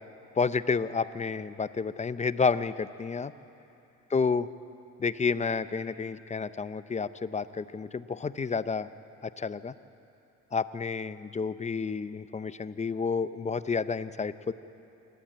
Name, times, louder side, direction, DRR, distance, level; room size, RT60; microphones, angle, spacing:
voice 1, 0.3-3.3 4.1-4.5 5.0-8.9 9.2-9.7 10.5-14.5, left 5 dB, 25° left, 14 dB, 0.6 m, -30 dB
25.5 x 12.0 x 8.6 m, 2.9 s
cardioid pair, 90°, 30 cm